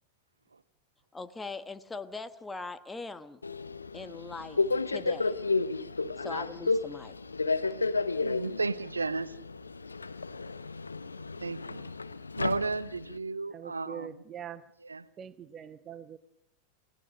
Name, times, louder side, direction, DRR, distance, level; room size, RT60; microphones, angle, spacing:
voice 1, 1.1-3.4 3.9-5.4 6.2-7.1, left 3 dB, 10° left, 1.3 m, -41 dB
Subway metro underground, 3.4-13.2, left 3 dB, 80° left, 1.1 m, -32 dB
voice 2, 8.2-9.3 11.4-11.9 12.4-14.2 14.8-15.1, right 3 dB, 80° right, 1.0 m, -34 dB
voice 3, 13.5-14.6 15.2-16.2, right 9 dB, 25° right, 1.0 m, -43 dB
29.0 x 19.5 x 5.3 m
figure-of-eight pair, 90°, 0 cm